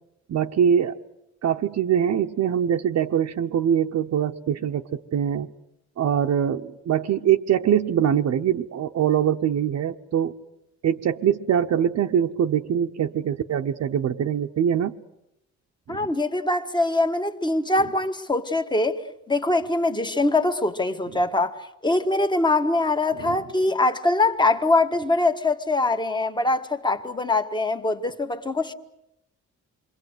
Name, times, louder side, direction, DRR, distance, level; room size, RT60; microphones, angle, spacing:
voice 1, 0.3-1.0 1.4-5.5 6.0-10.4 10.8-14.9 15.9-16.0 23.2-23.4, right 9 dB, 65° right, 1.0 m, -23 dB
voice 2, 15.9-28.7, left 2 dB, 15° left, 1.6 m, -23 dB
28.0 x 23.0 x 8.1 m
cardioid pair, 120°, 29 cm